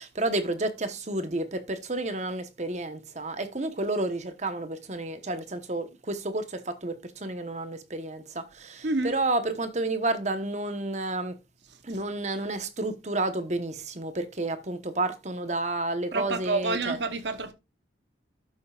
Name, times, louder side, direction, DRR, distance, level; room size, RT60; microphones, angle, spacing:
voice 1, 0.0-11.3 11.8-17.0, right 2 dB, 35° right, 1.1 m, -31 dB
voice 2, 8.8-9.1 16.1-17.5, right 3 dB, 65° right, 1.0 m, -28 dB
12.0 x 7.4 x 2.4 m
head